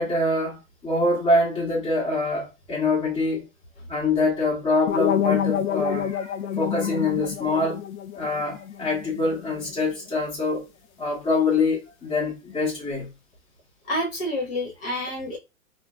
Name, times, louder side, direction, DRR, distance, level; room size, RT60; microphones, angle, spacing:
voice 1, 0.0-3.4 3.9-7.8 8.1-10.7 11.0-13.1, left 2 dB, 10° left, 1.5 m, -25 dB
sound 1, 4.9-9.8, left 9 dB, 75° left, 0.6 m, -28 dB
voice 2, 13.9-15.4, left 1 dB, 45° left, 1.2 m, -28 dB
3.8 x 2.2 x 2.4 m
hypercardioid pair, 135°, 42 cm